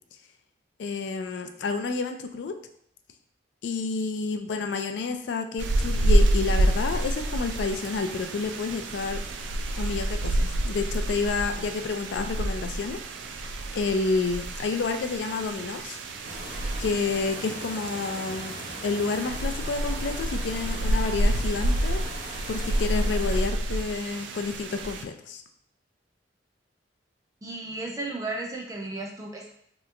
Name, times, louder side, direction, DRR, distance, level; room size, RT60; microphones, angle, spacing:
voice 1, 0.8-2.5 3.6-9.2 9.8-13.0 13.7-16.0 16.8-18.6 18.8-22.0 22.5-25.4, left 4 dB, 70° left, 6 dB, 0.3 m, -29 dB
sound 1, 5.6-25.0, right 1 dB, 85° right, 0.4 m, -28 dB
sound 2, 16.2-23.5, right 1 dB, 50° right, 0.8 m, -39 dB
voice 2, 27.4-29.5, right 2 dB, 20° right, -1 dB, 0.5 m, -34 dB
3.3 x 2.9 x 2.4 m, 0.69 s
head